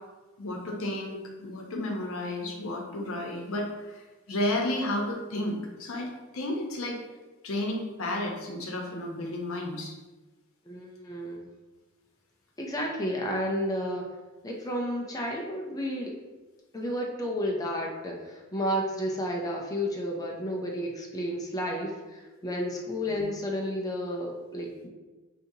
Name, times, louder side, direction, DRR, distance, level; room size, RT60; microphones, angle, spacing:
voice 1, 0.4-4.0 4.3-7.0 7.4-9.9 23.1-23.2, left 1 dB, 80° left, 1 dB, 0.7 m, -32 dB
voice 2, 10.7-11.5 12.6-14.1 14.4-16.2 16.7-24.9, equal, 15° left, -1 dB, 0.5 m, -32 dB
4.9 x 2.8 x 2.7 m, 1.2 s
head